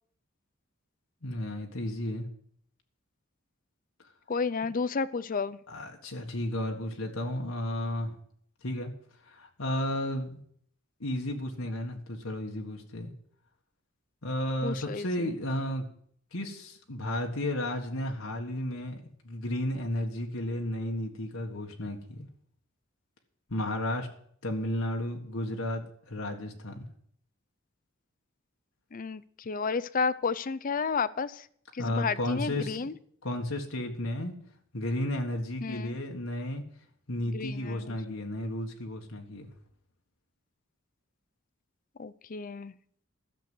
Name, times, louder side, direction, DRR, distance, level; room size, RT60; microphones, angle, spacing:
voice 1, 1.2-2.3 5.7-8.1 8.6-8.9 9.2-10.4 11.0-13.1 14.2-15.8 16.3-22.3 23.5-24.1 24.4-26.9 31.8-32.9 33.2-34.3 34.7-36.6 37.1-39.5, left 1 dB, 85° left, 2 dB, 1.7 m, -33 dB
voice 2, 4.3-5.6 14.6-15.4 28.9-31.5 31.7-32.9 35.6-36.0 37.3-37.9 42.0-42.7, left 5 dB, 40° left, 16 dB, 0.5 m, -32 dB
13.0 x 6.9 x 7.8 m, 0.63 s
head